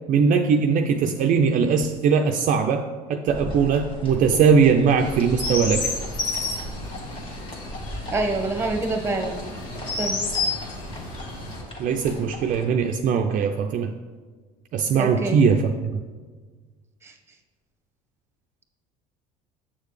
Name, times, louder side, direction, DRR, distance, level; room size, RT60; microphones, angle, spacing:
voice 1, 0.1-5.9 11.8-13.9 14.7-16.0, right 6 dB, 50° right, 4 dB, 0.5 m, -20 dB
sound 1, 3.3-12.6, equal, 30° left, 1.5 m, -38 dB
Chirp tweet, 5.0-11.6, left 3 dB, 80° left, 1.5 m, -31 dB
voice 2, 8.1-9.4 10.0-10.2 15.0-15.4 17.0-17.1, right 2 dB, 15° right, 4 dB, 1.1 m, -26 dB
7.3 x 6.5 x 3.2 m, 1.4 s
hypercardioid pair, 80°, 18 cm